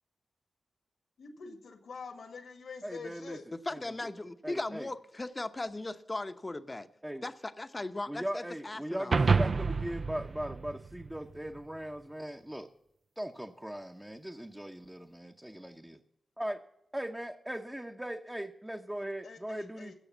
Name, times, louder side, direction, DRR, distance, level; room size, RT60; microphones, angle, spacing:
voice 1, 1.2-3.4 19.2-20.0, left 4 dB, 80° left, 5 dB, 1.9 m, -45 dB
voice 2, 2.8-3.4 3.7-3.8 4.4-4.9 7.0-7.2 8.1-12.7 13.2-16.0 16.4-16.6 16.9-20.0, right 1 dB, 10° right, 2 dB, 0.8 m, -39 dB
voice 3, 3.7-6.9 7.2-9.2, left 2 dB, 30° left, 10 dB, 0.8 m, -38 dB
sound 1, 9.1-11.6, right 4 dB, 55° right, 0.4 m, -29 dB
15.5 x 6.4 x 7.3 m, 0.80 s
cardioid pair, 60°, 0 cm